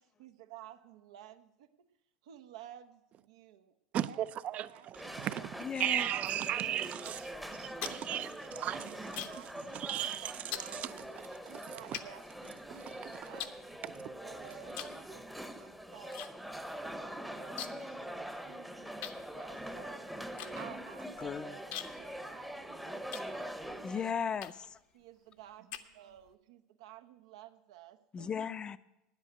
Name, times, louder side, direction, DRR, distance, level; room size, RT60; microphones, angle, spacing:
voice 1, 0.2-1.7 2.2-3.7 4.1-4.2 4.6-5.5 5.8-5.9 6.6-11.1 11.5-13.5 14.2-16.2 16.6-23.0 23.3-24.0 24.9-28.3, right 11 dB, 80° right, 0.8 m, -54 dB
voice 2, 3.9-5.5 5.8-12.0 12.7-13.4 13.8-14.1, right 11 dB, 45° right, 0.5 m, -37 dB
sound 1, 4.9-24.1, right 1 dB, ahead, 0.8 m, -44 dB
voice 3, 5.6-6.1 21.2-21.6 23.8-24.8 28.1-28.8, left 7 dB, 30° left, 0.5 m, -36 dB
sound 2, 7.6-9.5 9.8-10.1 10.5-10.7 11.4-11.5 11.9-12.9 13.4-14.2 14.7-15.0 15.3-16.3 16.6-16.7 16.9-17.9 18.2-18.3 19.0-23.8 24.4-24.8 25.3-26.3, left 11 dB, 65° left, 0.9 m, -44 dB
9.7 x 8.4 x 8.4 m
hypercardioid pair, 90°, 3 cm